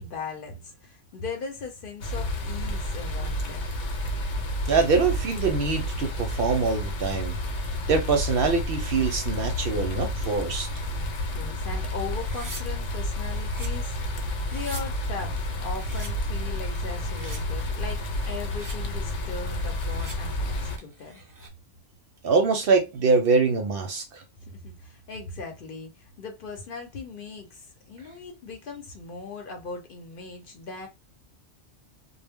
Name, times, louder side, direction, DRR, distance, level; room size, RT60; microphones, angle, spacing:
voice 1, 0.0-3.7 11.3-21.2 24.4-30.9, left 4 dB, 55° left, 0.8 m, -39 dB
sound 1, 2.0-20.8, left 1 dB, 90° left, 1.0 m, -30 dB
voice 2, 4.7-7.4 7.9-10.7 22.2-24.2, right 4 dB, 60° right, 0.7 m, -24 dB
sound 2, 12.1-12.6 13.1-13.7 14.3-14.8 15.4-16.1 16.7-17.4 18.0-18.7 19.5-20.2 20.8-21.5, right 2 dB, 30° right, 0.4 m, -44 dB
2.1 x 2.0 x 3.4 m
omnidirectional pair, 1.2 m